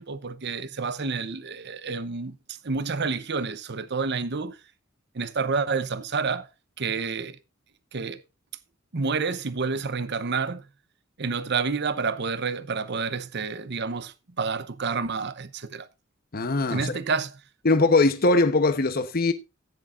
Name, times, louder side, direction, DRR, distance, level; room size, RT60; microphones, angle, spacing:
voice 1, 0.0-4.6 5.1-6.5 6.8-7.4 7.9-8.2 8.9-10.7 11.2-15.9 16.7-17.4, right 4 dB, 60° right, 0.9 m, -29 dB
voice 2, 16.3-16.9 17.6-19.3, left 3 dB, 50° left, 1.0 m, -21 dB
15.0 x 9.9 x 2.6 m
head